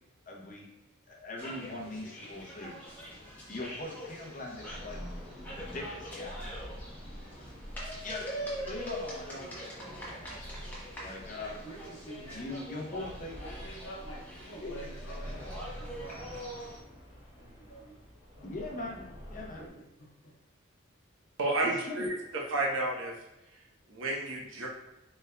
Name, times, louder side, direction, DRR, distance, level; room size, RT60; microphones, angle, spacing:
voice 1, 0.3-0.7 1.1-2.8 3.5-5.0 5.5-6.6 8.0-10.3 11.0-11.5 12.3-13.4 14.6-15.0 18.4-19.7 21.6-22.1, left 2 dB, 40° left, -2 dB, 0.7 m, -41 dB
sound 1, 1.4-16.8, equal, 10° left, 0.9 m, -44 dB
sound 2, 2.9-19.7, equal, 35° right, 1.2 m, -47 dB
voice 2, 11.4-12.6 13.3-15.5 15.8-16.5 17.4-18.0 19.6-19.7 20.0-20.1, right 1 dB, 80° left, -4 dB, 1.1 m, -47 dB
voice 3, 21.4-23.2 23.9-24.7, right 2 dB, 70° right, -1 dB, 0.8 m, -31 dB
4.3 x 3.4 x 2.2 m, 0.96 s
head